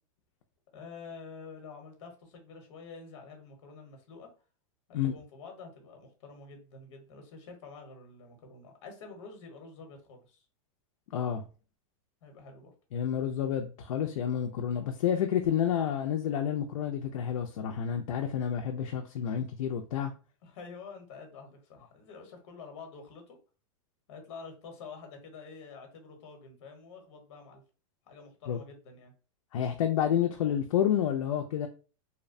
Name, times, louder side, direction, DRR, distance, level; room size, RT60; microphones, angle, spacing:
voice 1, 0.7-4.3 4.9-10.4 12.2-12.7 20.4-23.4 24.1-27.6 28.1-29.1, left 4 dB, 55° left, 0.9 m, -48 dB
voice 2, 11.1-11.4 12.9-20.1 28.5-28.6 29.5-31.7, left 9 dB, 85° left, 0.4 m, -29 dB
2.7 x 2.1 x 2.5 m
supercardioid pair, 165°, 17 cm